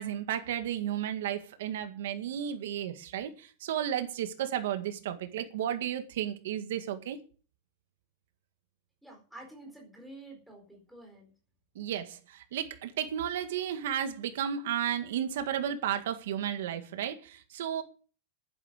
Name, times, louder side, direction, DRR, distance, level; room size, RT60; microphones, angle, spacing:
voice 1, 0.0-7.2 11.8-17.8, right 10 dB, 80° right, 1.8 m, -33 dB
voice 2, 9.0-11.3, right 2 dB, ahead, 4.3 m, -49 dB
11.5 x 10.0 x 6.5 m
supercardioid pair, 180°, 0 cm